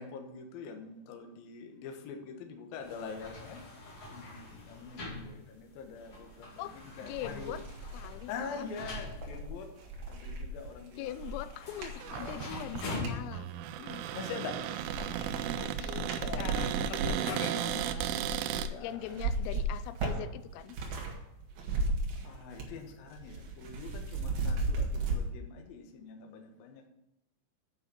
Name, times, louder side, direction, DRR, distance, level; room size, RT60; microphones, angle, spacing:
voice 1, 0.0-3.6 4.1-7.6 8.3-9.7 10.1-11.4 12.2-12.4 14.1-14.6 16.2-17.3 18.5-19.1 22.2-26.8, left 5 dB, 70° left, 3 dB, 2.2 m, -44 dB
sound 1, 2.8-17.8, left 2 dB, 40° left, 2.8 m, -46 dB
sound 2, 6.5-6.6 7.1-13.2 13.8-14.4 14.7-21.2 21.4-22.8 23.1-25.2, right 2 dB, 60° right, 2.9 m, -36 dB
voice 2, 7.0-7.6 7.9-8.6 11.0-13.5 13.8-14.0 15.6-18.2 18.8-20.8, left 12 dB, 90° left, 14 dB, 3.3 m, -42 dB
Cupboard open or close, 12.0-18.7, right 11 dB, 85° right, 2.9 m, -35 dB
9.4 x 5.8 x 7.0 m, 0.86 s
omnidirectional pair, 5.9 m